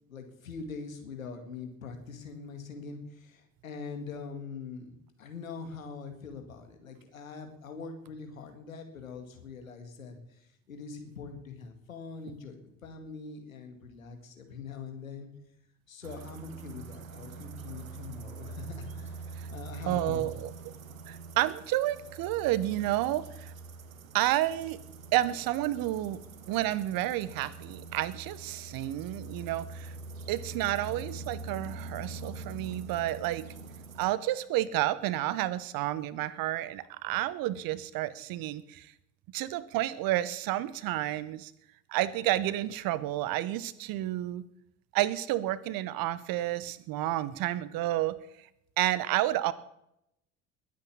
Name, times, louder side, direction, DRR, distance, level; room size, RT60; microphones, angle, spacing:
voice 1, 0.0-10.2 10.7-15.3 15.9-20.4, left 5 dB, 85° left, 6 dB, 2.2 m, -43 dB
sound 1, 16.0-34.1, right 3 dB, 85° right, 1.0 m, -44 dB
voice 2, 19.9-20.5 21.1-23.5 24.1-24.8 25.1-26.2 26.5-29.9 30.3-33.5 34.0-38.9 39.3-41.5 41.9-44.5 44.9-48.5 48.8-49.5, right 14 dB, 60° right, 17 dB, 1.1 m, -30 dB
21.0 x 8.8 x 7.3 m, 0.80 s
figure-of-eight pair, 55°, 39 cm